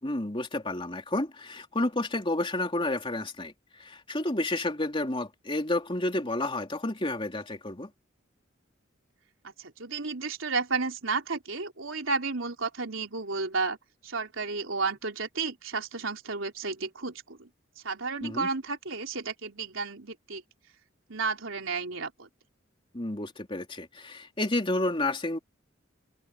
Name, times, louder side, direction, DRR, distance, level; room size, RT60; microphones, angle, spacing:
voice 1, 0.0-7.9 18.2-18.5 22.9-25.4, left 2 dB, 25° left, 3.3 m, -30 dB
voice 2, 9.6-13.8 14.0-17.5 17.8-20.4 21.1-22.3, right 4 dB, 85° right, 3.4 m, -32 dB
open air
head